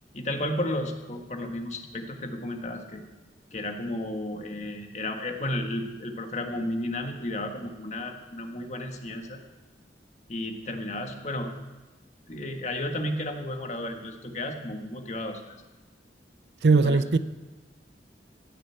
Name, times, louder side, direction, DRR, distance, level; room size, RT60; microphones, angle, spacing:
voice 1, 0.1-3.0 3.5-9.4 10.3-11.5 12.3-15.6 16.8-17.2, left 1 dB, 40° left, 4 dB, 1.5 m, -33 dB
voice 2, 16.6-17.2, right 4 dB, 75° right, 14 dB, 0.6 m, -19 dB
15.5 x 6.8 x 8.8 m, 1.1 s
head